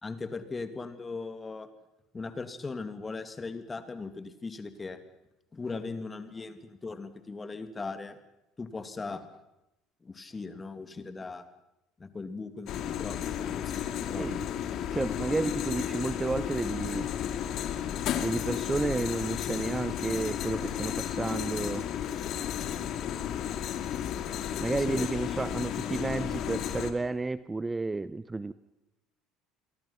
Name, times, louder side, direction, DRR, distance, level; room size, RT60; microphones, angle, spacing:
voice 1, 0.0-1.7 2.1-5.0 5.5-8.2 8.6-9.3 10.0-11.5 12.0-14.3 24.9-25.1, left 4 dB, 25° left, 9 dB, 2.6 m, -39 dB
sound 1, 12.7-26.9, left 10 dB, 55° left, 2.4 m, -33 dB
voice 2, 14.9-17.1 18.2-21.8 24.6-28.5, right 3 dB, 20° right, 16 dB, 0.8 m, -31 dB
29.0 x 23.0 x 5.8 m, 0.91 s
hypercardioid pair, 65°, 0 cm